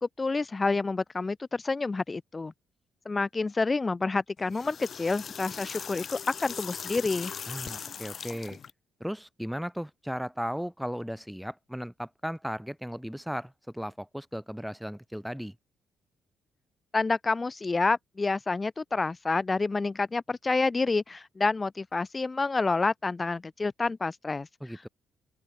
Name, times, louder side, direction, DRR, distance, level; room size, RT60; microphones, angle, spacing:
voice 1, 0.0-2.5 3.0-7.3 16.9-24.5, left 3 dB, 25° left, 1.6 m, -28 dB
sound 1, 4.4-8.7, left 7 dB, 50° left, 0.6 m, -39 dB
voice 2, 7.5-8.6 9.0-15.5 24.6-24.9, equal, ahead, 0.9 m, -36 dB
cardioid pair, 90°, 0 cm